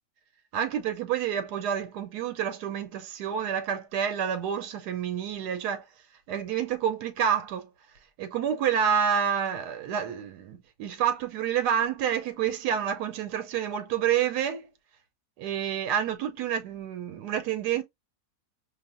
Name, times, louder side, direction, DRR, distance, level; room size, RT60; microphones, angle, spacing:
voice 1, 0.5-5.8 6.3-7.7 8.2-14.7 15.4-17.8, right 8 dB, 85° right, 1.2 m, -28 dB
4.8 x 2.6 x 2.4 m
omnidirectional pair, 1.7 m